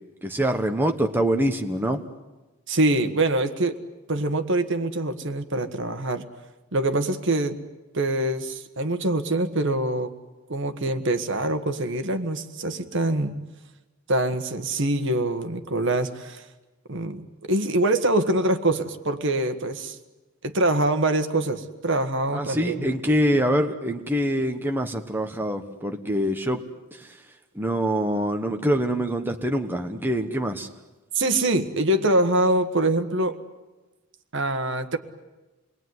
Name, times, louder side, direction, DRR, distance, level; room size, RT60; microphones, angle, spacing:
voice 1, 0.2-2.0 22.3-26.6 26.9-27.1 27.5-30.7, equal, 10° right, 3 dB, 1.2 m, -25 dB
voice 2, 2.7-3.8 4.1-6.2 6.7-7.5 7.9-10.1 10.5-13.3 14.1-16.4 16.9-20.0 20.4-22.9 31.1-33.4 34.3-35.0, right 1 dB, 60° right, 8 dB, 1.6 m, -24 dB
28.5 x 21.0 x 9.5 m, 1.1 s
head